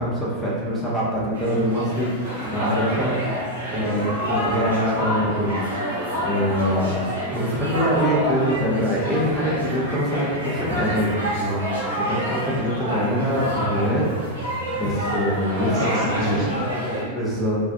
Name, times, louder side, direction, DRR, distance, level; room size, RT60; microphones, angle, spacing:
voice 1, 0.0-3.1 3.7-5.6 5.9-14.0 14.4-16.6 17.1-17.6, equal, 5° left, -8 dB, 0.6 m, -24 dB
sound 1, 1.3-17.0, equal, 70° right, 0.9 m, -28 dB
voice 2, 2.8-4.1 15.5-17.2, right 1 dB, 40° right, -6 dB, 0.7 m, -33 dB
2.3 x 2.1 x 2.6 m, 1.5 s
figure-of-eight pair, 90°, 0 cm